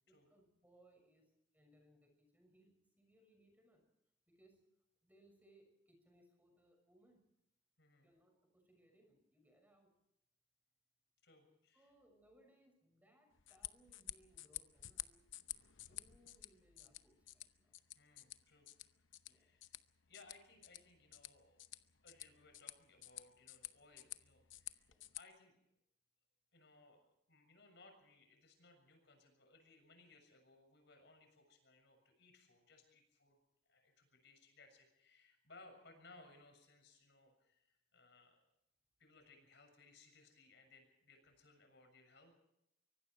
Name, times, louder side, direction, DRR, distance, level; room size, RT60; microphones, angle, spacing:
voice 1, 0.1-3.8 4.3-4.6 5.0-7.2 8.0-9.9 11.7-15.2 15.9-17.8 19.2-19.5 24.9-25.1, right 1 dB, 10° right, 3 dB, 6.3 m, -70 dB
voice 2, 7.8-8.1 11.2-11.9 17.9-18.7 19.3-19.6 20.1-21.6 22.0-25.6 26.5-33.4 33.7-38.4 39.0-42.3, left 3 dB, 65° left, 5 dB, 6.9 m, -64 dB
sound 1, 13.3-25.2, left 14 dB, 80° left, 0.9 m, -52 dB
24.5 x 24.0 x 4.7 m, 0.79 s
head